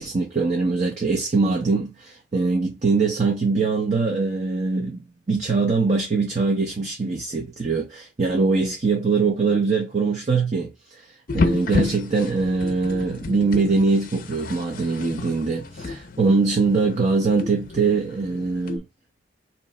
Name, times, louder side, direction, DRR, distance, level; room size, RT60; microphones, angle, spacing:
voice 1, 0.0-11.1 11.3-18.8, right 4 dB, 35° right, 0.6 m, -22 dB
sound 1, 11.3-18.8, left 3 dB, 45° left, 0.5 m, -30 dB
3.2 x 2.9 x 4.1 m
head